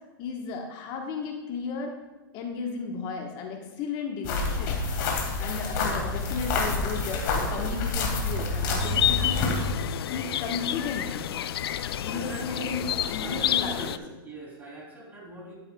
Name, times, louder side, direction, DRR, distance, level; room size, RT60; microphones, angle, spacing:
voice 1, 0.2-2.0 2.3-4.8 5.4-9.6 10.1-11.3 12.0-14.0, left 5 dB, 40° left, 2 dB, 1.2 m, -34 dB
sound 1, 4.2-9.7, left 3 dB, 55° left, 2.2 m, -28 dB
sound 2, 8.8-14.0, left 11 dB, 80° left, 0.4 m, -29 dB
voice 2, 12.1-12.9 13.2-15.5, right 1 dB, 15° right, -3 dB, 3.2 m, -42 dB
13.0 x 7.7 x 2.3 m, 1.1 s
hypercardioid pair, 135°, 13 cm